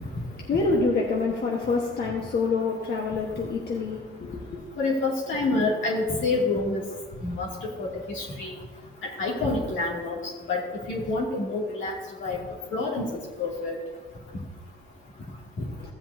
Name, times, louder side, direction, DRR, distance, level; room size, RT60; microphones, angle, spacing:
voice 1, 0.5-4.6, left 3 dB, 55° left, -2 dB, 1.4 m, -26 dB
voice 2, 4.8-6.8 7.2-8.5 9.2-10.2 10.5-10.6 10.9-11.9 12.2-12.4 12.7-13.7 15.6-15.7, left 3 dB, 75° left, -3 dB, 2.5 m, -27 dB
15.5 x 7.5 x 2.7 m, 1.4 s
cardioid pair, 90°, 20 cm